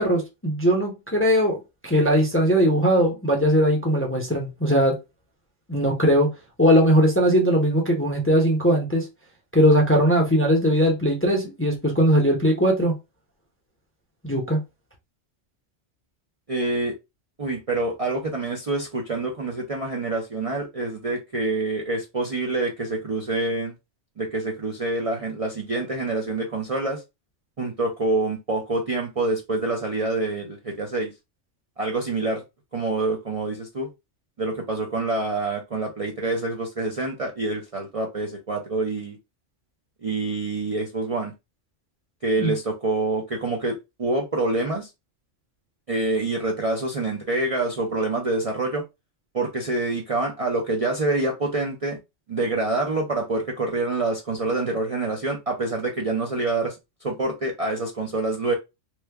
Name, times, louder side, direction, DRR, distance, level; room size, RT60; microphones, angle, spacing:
voice 1, 0.0-1.6 1.8-5.0 5.7-6.3 6.6-9.1 9.5-12.9 14.2-14.6 42.4-42.5, equal, 15° left, 0.5 m, -19 dB
voice 2, 16.5-16.9 17.4-23.7 24.2-27.0 27.6-31.1 31.8-32.4 32.7-33.9 34.4-39.2 40.0-41.3 42.2-44.9 45.9-48.8 49.3-52.0 52.3-58.5, right 2 dB, 45° right, 0.5 m, -26 dB
3.1 x 2.2 x 3.3 m
omnidirectional pair, 1.3 m